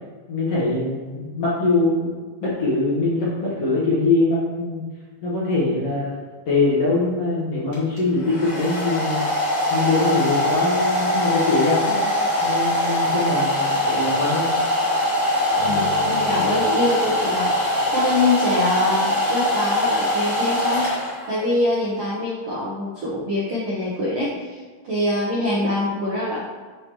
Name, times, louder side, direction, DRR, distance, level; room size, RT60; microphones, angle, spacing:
voice 1, 0.3-2.1 2.4-4.8 5.2-6.1 6.5-9.2 9.7-12.0 12.4-14.5, left 2 dB, 60° left, -8 dB, 1.7 m, -22 dB
Domestic sounds home sounds, 7.7-21.4, left 1 dB, 40° left, 0.8 m, -22 dB
sound 1, 15.5-18.2, left 8 dB, 80° left, 2.2 m, -35 dB
voice 2, 15.6-20.9 21.3-26.4, left 2 dB, 70° right, -8 dB, 1.4 m, -24 dB
7.0 x 4.8 x 3.1 m, 1.5 s
omnidirectional pair, 4.2 m